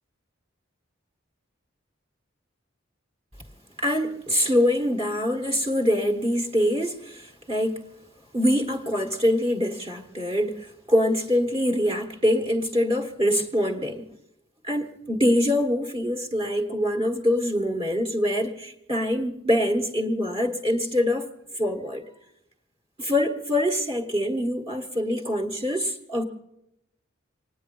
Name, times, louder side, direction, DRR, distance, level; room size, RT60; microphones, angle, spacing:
voice 1, 3.8-7.8 8.3-14.0 14.7-21.3 21.5-22.0 23.0-26.2, equal, 30° right, 1.4 m, -24 dB
25.0 x 9.8 x 5.4 m
head